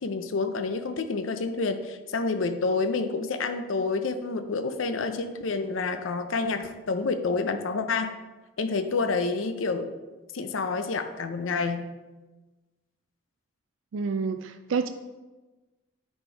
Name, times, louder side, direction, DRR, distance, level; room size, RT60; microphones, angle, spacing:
voice 1, 0.0-8.1 8.6-9.9 10.3-11.9, left 4 dB, 90° left, 8 dB, 0.6 m, -28 dB
voice 2, 13.9-14.9, right 5 dB, 85° right, 9 dB, 0.4 m, -28 dB
10.0 x 4.4 x 4.5 m, 1.2 s
head